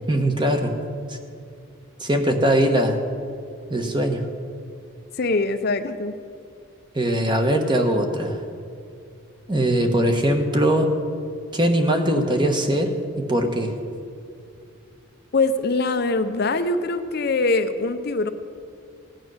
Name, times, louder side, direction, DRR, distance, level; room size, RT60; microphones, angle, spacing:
voice 1, 0.1-0.7 1.1-1.2 2.0-3.0 3.7-4.3 6.9-8.4 9.5-10.9 11.5-13.7, right 1 dB, 20° right, 5 dB, 1.1 m, -21 dB
voice 2, 5.2-6.1 15.3-18.3, left 3 dB, 45° left, 9 dB, 0.6 m, -23 dB
17.0 x 9.1 x 6.3 m, 2.4 s
head